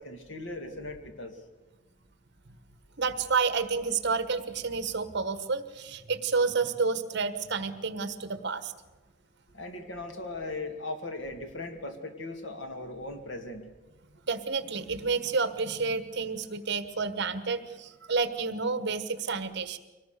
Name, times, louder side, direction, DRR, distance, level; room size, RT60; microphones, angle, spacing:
voice 1, 0.0-1.4 9.5-13.7, left 2 dB, 65° left, 6 dB, 2.3 m, -38 dB
voice 2, 3.0-8.7 14.3-19.8, right 4 dB, 55° right, 11 dB, 1.3 m, -30 dB
23.5 x 18.5 x 6.7 m, 1.2 s
head